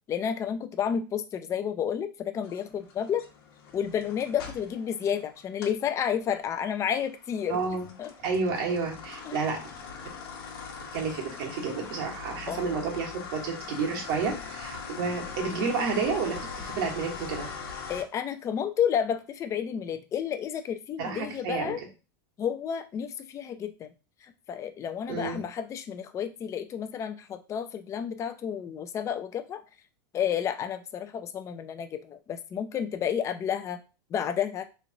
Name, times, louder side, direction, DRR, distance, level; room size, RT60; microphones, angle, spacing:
voice 1, 0.1-3.2 3.7-8.1 9.3-9.4 12.5-12.8 17.9-21.8 22.4-23.9 24.2-29.6 30.1-33.8 34.1-34.6, left 8 dB, 25° left, 8 dB, 0.4 m, -31 dB
sound 1, 2.4-5.8 6.2-18.0, left 5 dB, 80° left, 1.0 m, -41 dB
voice 2, 7.5-7.9 8.2-9.6 10.9-17.5 21.0-21.7 25.1-25.4, right 4 dB, 65° right, 0 dB, 1.3 m, -30 dB
3.1 x 2.4 x 3.9 m, 0.31 s
supercardioid pair, 130°, 12 cm